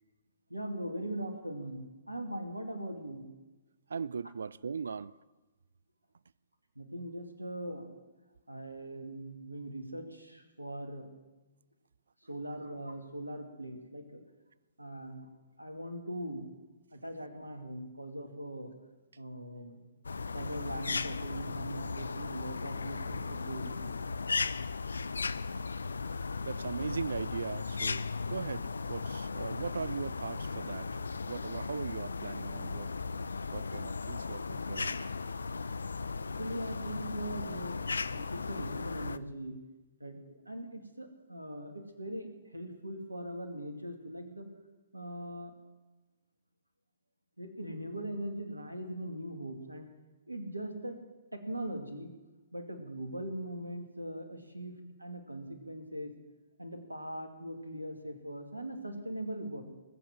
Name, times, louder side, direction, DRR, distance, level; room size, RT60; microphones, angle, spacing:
voice 1, 0.5-3.2 6.8-7.9 8.5-11.1 12.3-14.2 14.8-15.3 15.6-16.5 16.9-18.7 19.2-19.8 20.3-24.0 36.2-39.6 40.0-44.5 44.9-45.5 47.4-49.9 50.3-51.0 51.3-52.1 52.5-56.1 56.6-59.6, right 1 dB, 85° right, 6 dB, 2.3 m, -41 dB
voice 2, 3.9-5.1 26.4-30.9 31.3-32.9 33.5-35.1, right 5 dB, 65° right, 22 dB, 0.4 m, -39 dB
sound 1, 20.0-39.2, left 4 dB, 70° left, 0.5 m, -36 dB
20.0 x 7.7 x 7.6 m, 1.1 s
figure-of-eight pair, 120°, 0 cm